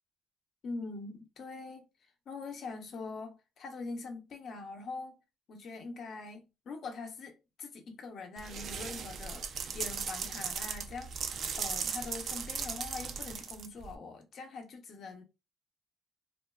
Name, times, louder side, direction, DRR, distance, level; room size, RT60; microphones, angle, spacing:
voice 1, 0.6-1.8 2.3-5.2 5.5-15.2, left 3 dB, 65° left, 0.7 m, -43 dB
sound 1, 8.4-13.9, right 6 dB, 65° right, 0.4 m, -37 dB
2.5 x 2.3 x 2.2 m
cardioid pair, 90°, 0 cm